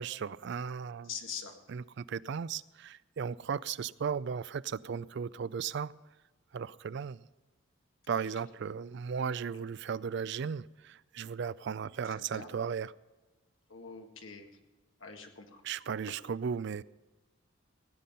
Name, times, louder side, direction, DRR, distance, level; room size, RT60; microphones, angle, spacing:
voice 1, 0.0-1.1 1.7-5.9 6.5-7.2 8.1-12.9 15.6-16.8, right 6 dB, 60° right, 18 dB, 0.4 m, -36 dB
voice 2, 1.0-1.5 8.1-8.2 12.0-12.5 13.7-14.6 15.0-15.6, left 6 dB, 75° left, 3 dB, 1.8 m, -44 dB
16.5 x 9.2 x 5.4 m, 1.2 s
head